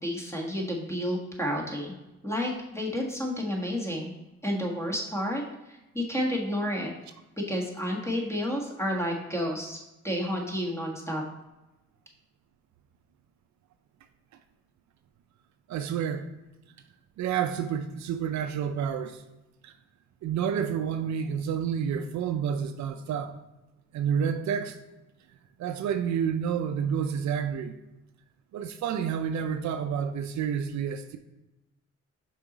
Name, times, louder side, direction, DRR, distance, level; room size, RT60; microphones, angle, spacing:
voice 1, 0.0-1.9 2.2-4.1 4.4-5.4 5.7-6.9 7.5-9.8 10.0-11.2, equal, 10° left, -1 dB, 1.5 m, -30 dB
voice 2, 15.7-16.3 17.2-19.2 19.6-19.7 20.2-23.4 23.9-24.8 25.6-27.8 28.5-31.2, right 8 dB, 70° right, 9 dB, 0.5 m, -29 dB
5.9 x 4.3 x 3.9 m, 0.98 s
cardioid pair, 90°, 30 cm